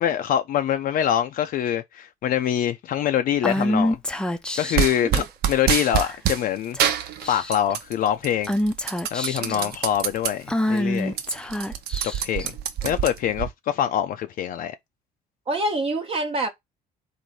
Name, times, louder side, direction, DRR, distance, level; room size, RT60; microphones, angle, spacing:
voice 1, 0.0-4.0 4.6-6.8 7.3-8.5 9.1-11.2 12.2-12.5 12.8-14.8, left 10 dB, 55° left, 0.4 m, -24 dB
Female speech woman speaking / Whispering, 3.4-4.9 5.9-6.3 6.7-6.9 7.2-7.7 8.5-9.6 10.5-12.4, left 1 dB, 5° left, 0.5 m, -26 dB
sound 1, 4.8-6.4 6.8-7.9 8.2-10.3 10.7-10.8 11.1-13.5, right 9 dB, 70° right, 0.7 m, -25 dB
voice 2, 9.4-9.7 12.4-12.5 15.5-16.5, right 2 dB, 35° right, 0.8 m, -27 dB
4.1 x 2.6 x 4.6 m
cardioid pair, 110°, 17 cm